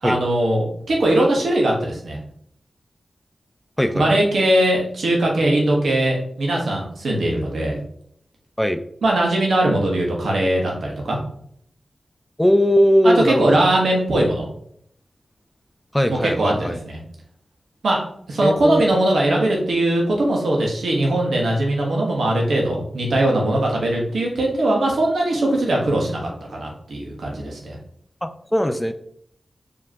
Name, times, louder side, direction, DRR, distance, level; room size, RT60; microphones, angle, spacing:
voice 1, 0.0-2.2 3.9-7.8 9.0-11.2 13.0-14.5 16.1-16.5 16.9-17.0 17.8-18.0 18.3-27.8, right 1 dB, 85° right, -1 dB, 1.1 m, -20 dB
voice 2, 3.8-4.2 8.6-8.8 12.4-13.6 15.9-16.8 18.4-19.0 28.2-28.9, equal, 10° left, 8 dB, 0.3 m, -19 dB
5.1 x 2.9 x 2.8 m, 0.67 s
cardioid pair, 55°, 0 cm